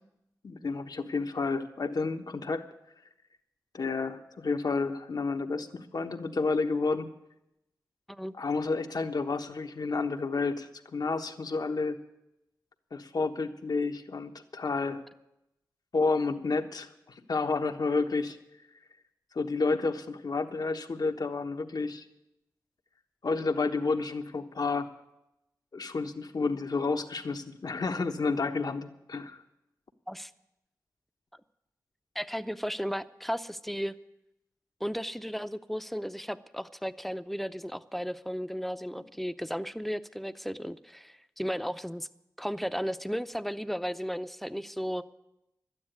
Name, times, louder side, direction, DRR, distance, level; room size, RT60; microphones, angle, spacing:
voice 1, 0.4-2.7 3.7-7.1 8.4-12.0 12.9-15.0 15.9-16.9 17.3-18.4 19.3-22.0 23.2-24.9 25.7-29.4, left 4 dB, 65° left, 6 dB, 1.2 m, -30 dB
voice 2, 32.1-34.0 34.8-42.1 42.4-45.0, equal, ahead, 12 dB, 0.7 m, -34 dB
12.5 x 9.7 x 9.3 m, 0.88 s
cardioid pair, 45°, 7 cm